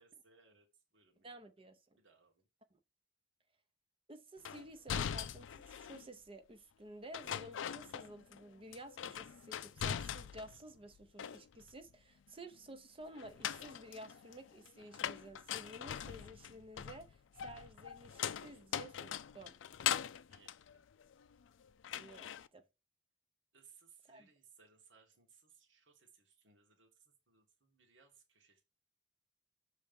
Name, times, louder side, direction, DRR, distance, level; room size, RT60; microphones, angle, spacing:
voice 1, 0.0-1.4 1.9-2.4 20.3-20.8 23.5-28.6, right 6 dB, 75° right, 1.5 m, -66 dB
voice 2, 1.2-1.8 2.7-2.8 4.1-19.5 22.0-22.6 24.1-24.3, right 1 dB, 30° right, 0.6 m, -53 dB
sound 1, 4.4-6.1 7.1-8.4 8.7-10.6 10.9-11.8 13.2-21.5 21.8-22.5, left 9 dB, 80° left, 0.4 m, -41 dB
6.6 x 3.2 x 5.1 m
head